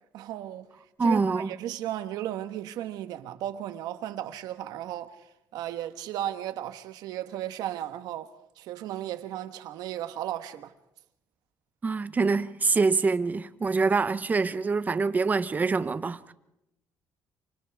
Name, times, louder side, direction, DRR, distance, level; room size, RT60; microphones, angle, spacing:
voice 1, 0.1-0.6 1.0-5.3 5.5-10.7, right 12 dB, 80° right, 1.4 m, -35 dB
voice 2, 1.0-1.5 11.8-16.3, right 4 dB, 25° right, 0.9 m, -25 dB
28.5 x 25.5 x 3.5 m
cardioid pair, 115°, 7 cm